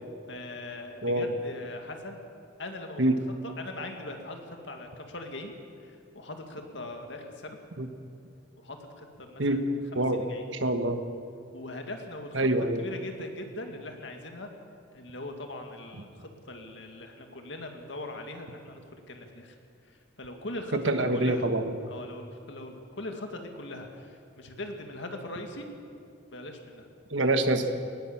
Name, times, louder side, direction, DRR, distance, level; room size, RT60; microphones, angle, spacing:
voice 1, 0.3-2.2 2.6-3.0 3.4-5.5 5.8-7.6 8.6-9.6 9.9-10.5 11.5-12.5 12.8-14.5 14.9-18.8 19.1-19.6 19.8-21.5 21.9-25.7 26.3-26.9, left 2 dB, 65° left, 4 dB, 2.2 m, -40 dB
voice 2, 10.5-11.0 12.3-12.8 20.7-21.7 27.1-27.7, right 1 dB, 75° right, 7 dB, 1.5 m, -25 dB
19.5 x 18.0 x 7.3 m, 2.4 s
head